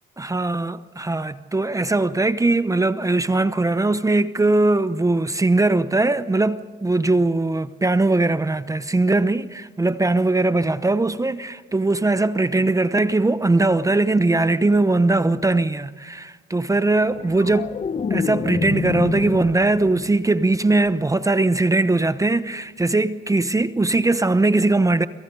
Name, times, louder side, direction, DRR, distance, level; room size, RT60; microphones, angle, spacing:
voice 1, 0.2-17.8 18.1-25.1, right 2 dB, 15° right, 0.8 m, -20 dB
sound 1, 17.0-20.1 20.5-20.9, left 5 dB, 35° left, 1.2 m, -27 dB
28.5 x 26.5 x 3.9 m
cardioid pair, 90°, 20 cm